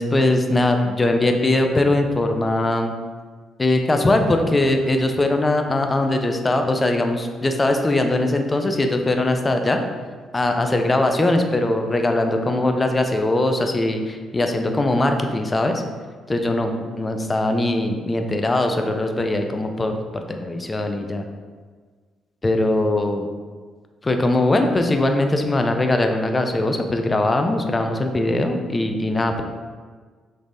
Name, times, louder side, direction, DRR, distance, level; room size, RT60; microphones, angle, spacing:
voice 1, 0.0-2.9 3.6-9.8 10.3-15.8 16.3-21.2 22.4-23.3 24.0-29.4, left 2 dB, 25° left, 5 dB, 0.3 m, -21 dB
3.3 x 3.1 x 2.6 m, 1.5 s
cardioid pair, 90°, 0 cm